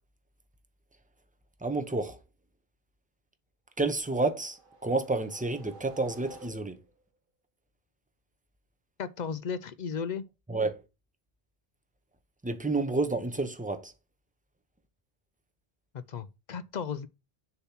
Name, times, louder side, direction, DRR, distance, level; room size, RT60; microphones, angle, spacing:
voice 1, 1.6-2.2 3.8-6.8 10.5-10.8 12.4-13.9, right 3 dB, 10° right, 0.7 m, -30 dB
sound 1, 3.9-7.0, right 3 dB, 55° right, 1.4 m, -52 dB
voice 2, 9.0-10.2 15.9-17.1, left 6 dB, 55° left, 0.6 m, -35 dB
6.8 x 3.0 x 5.7 m
omnidirectional pair, 1.0 m